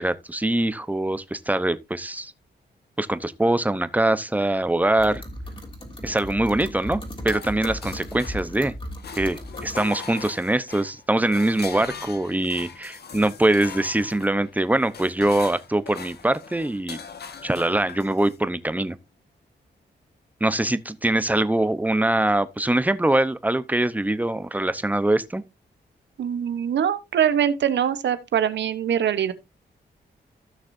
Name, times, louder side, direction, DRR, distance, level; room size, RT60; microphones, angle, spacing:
voice 1, 0.0-2.3 3.0-5.2 6.0-7.0 7.2-8.7 9.2-17.0 17.4-19.0 20.4-25.4, right 1 dB, 10° right, 0.9 m, -23 dB
sound 1, 5.0-9.8, left 1 dB, 30° left, 3.2 m, -36 dB
sound 2, 7.3-8.7 9.0-18.4, left 6 dB, 65° left, 1.4 m, -41 dB
voice 2, 26.2-29.3, right 9 dB, 90° right, 1.0 m, -23 dB
15.5 x 6.3 x 2.6 m
cardioid pair, 75°, 18 cm